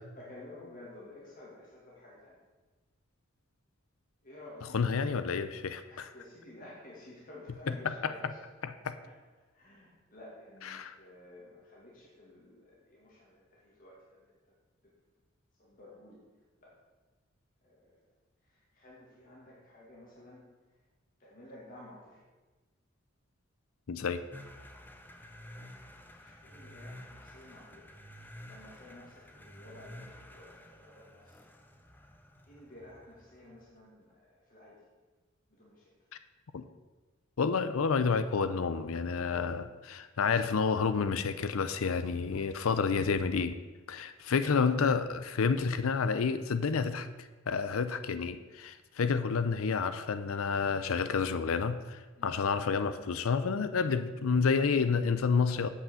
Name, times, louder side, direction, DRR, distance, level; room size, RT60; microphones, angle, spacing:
voice 1, 0.1-2.4 4.2-5.5 5.9-8.4 9.0-14.5 15.6-16.2 16.6-16.8 17.6-18.0 18.4-20.7 21.2-22.2 25.5-25.7 26.2-27.9 28.4-31.4 32.5-34.8 35.5-36.1 52.1-52.3 54.6-54.9, left 1 dB, 40° left, -5 dB, 2.2 m, -53 dB
voice 2, 4.7-6.1 7.8-8.1 8.6-9.0 10.7-11.0 23.9-24.2 36.5-36.6 37.4-43.6 43.9-55.7, left 5 dB, 85° left, 12 dB, 0.5 m, -29 dB
sound 1, 24.3-33.7, left 1 dB, 10° left, 0.7 m, -51 dB
8.4 x 5.7 x 6.9 m, 1.3 s
head